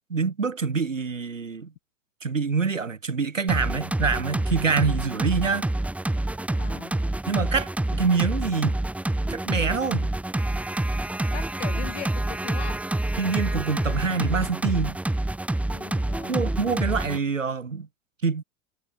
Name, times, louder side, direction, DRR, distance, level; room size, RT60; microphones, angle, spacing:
voice 1, 0.1-1.7 2.2-5.7 7.3-8.8 9.3-10.1 13.2-15.0 16.3-17.9 18.2-18.4, right 5 dB, 85° right, 5.1 m, -26 dB
sound 1, 3.5-17.2, right 1 dB, 5° right, 1.0 m, -27 dB
voice 2, 6.5-6.9 11.3-12.8 15.7-16.4, left 14 dB, 65° left, 7.9 m, -40 dB
figure-of-eight pair, 85°, 37 cm